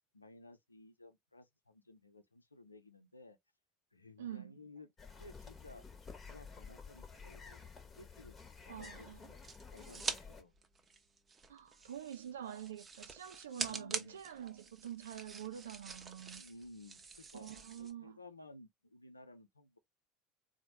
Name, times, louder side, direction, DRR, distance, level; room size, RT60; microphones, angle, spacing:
voice 1, 0.1-3.4 3.9-5.9 6.3-7.6 7.9-9.4 9.7-10.5 13.6-14.2 16.3-17.5 17.8-19.8, left 2 dB, 90° left, 0.5 m, -56 dB
voice 2, 4.2-4.6 8.7-9.3 11.5-16.4 17.3-18.2, right 10 dB, 75° right, 0.3 m, -46 dB
sound 1, 5.0-10.4, left 5 dB, 25° left, 1.0 m, -52 dB
sound 2, 8.8-10.2 10.5-17.9, right 4 dB, 25° right, 0.7 m, -45 dB
4.0 x 2.2 x 2.8 m
figure-of-eight pair, 75°, 0 cm